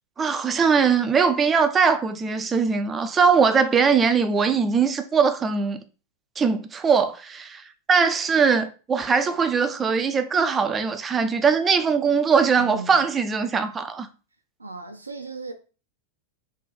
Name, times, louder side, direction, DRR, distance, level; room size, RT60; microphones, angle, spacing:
voice 1, 0.2-5.8 6.4-14.1, right 5 dB, 20° right, 0.5 m, -21 dB
voice 2, 12.5-13.1 14.6-15.5, right 3 dB, 80° right, 0.7 m, -36 dB
3.2 x 2.9 x 4.3 m
figure-of-eight pair, 90°, 0 cm